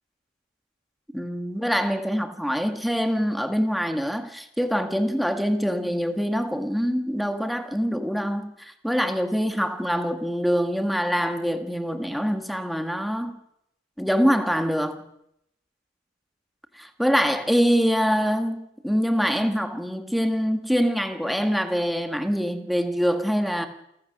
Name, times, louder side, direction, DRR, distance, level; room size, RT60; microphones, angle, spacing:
voice 1, 1.1-13.4 14.0-15.0 16.8-23.7, equal, ahead, 1.6 m, -24 dB
29.0 x 15.5 x 6.5 m
head